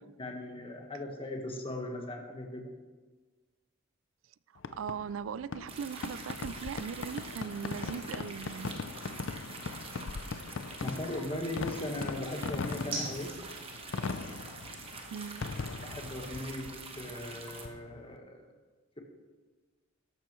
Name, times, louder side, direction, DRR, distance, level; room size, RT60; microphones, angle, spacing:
voice 1, 0.2-2.7 10.8-13.3 15.8-16.7 17.0-18.4, left 1 dB, 30° left, 1.4 m, -38 dB
sound 1, 3.1-17.3, right 2 dB, 50° right, 3.7 m, -50 dB
Fireworks, 4.6-18.1, left 4 dB, 70° left, 0.5 m, -40 dB
voice 2, 4.8-8.9 15.1-15.4, right 7 dB, 80° right, 0.3 m, -39 dB
sound 2, 5.7-17.7, right 4 dB, 30° right, 1.2 m, -46 dB
14.0 x 11.5 x 3.1 m
head